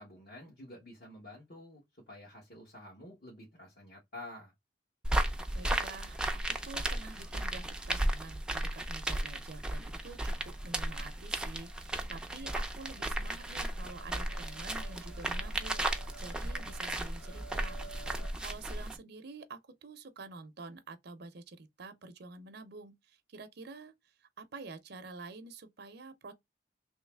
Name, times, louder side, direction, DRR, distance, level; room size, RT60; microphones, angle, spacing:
voice 1, 0.0-4.5, left 1 dB, 55° left, 1.5 m, -50 dB
sound 1, 5.0-19.0, right 1 dB, 5° right, 0.5 m, -35 dB
voice 2, 5.5-15.8 16.2-23.9 24.2-26.3, right 3 dB, 60° right, 0.6 m, -48 dB
sound 2, 10.4-18.3, right 2 dB, 80° left, 1.2 m, -55 dB
3.1 x 3.0 x 3.3 m
head